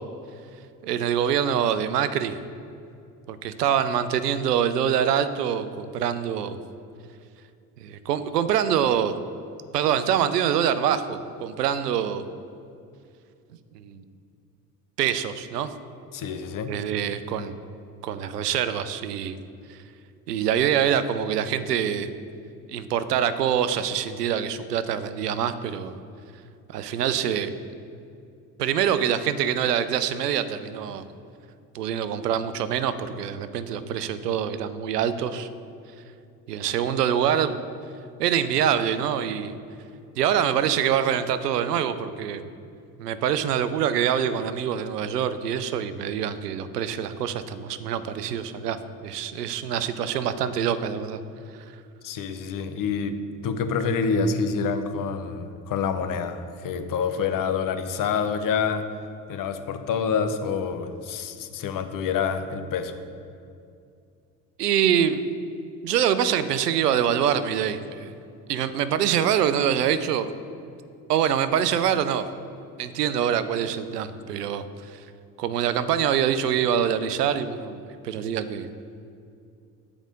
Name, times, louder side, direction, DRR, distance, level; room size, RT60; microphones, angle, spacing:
voice 1, 0.8-2.4 3.3-6.6 7.8-9.1 9.7-12.3 13.7-14.0 15.0-15.7 16.7-17.6 18.0-19.4 19.7-19.8 20.3-22.1 22.7-25.9 26.7-27.5 28.6-31.0 31.7-35.5 36.5-37.6 38.2-39.5 40.2-42.4 43.0-51.2 64.6-65.2 65.8-68.1 68.5-70.3 71.1-72.2 72.8-75.0 75.4-78.7, right 9 dB, 90° right, 12 dB, 0.5 m, -25 dB
voice 2, 16.1-16.7 52.0-58.9 59.3-63.0, left 5 dB, 45° left, 8 dB, 0.9 m, -27 dB
9.0 x 4.8 x 5.1 m, 2.4 s
hypercardioid pair, 60°, 46 cm